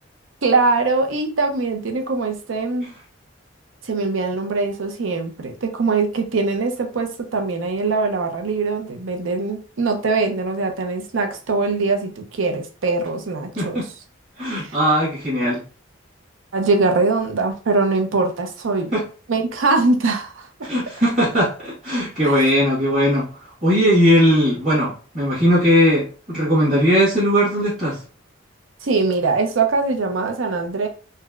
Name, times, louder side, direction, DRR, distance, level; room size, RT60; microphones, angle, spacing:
voice 1, 0.4-2.9 3.8-13.8 14.5-14.8 16.5-18.9 19.3-20.7 22.2-22.4 28.8-30.9, right 3 dB, 75° right, 0.6 m, -22 dB
voice 2, 13.6-13.9 14.4-15.6 18.9-19.0 20.6-23.3 23.6-28.0, equal, 30° right, 1.2 m, -18 dB
3.9 x 2.1 x 2.3 m
head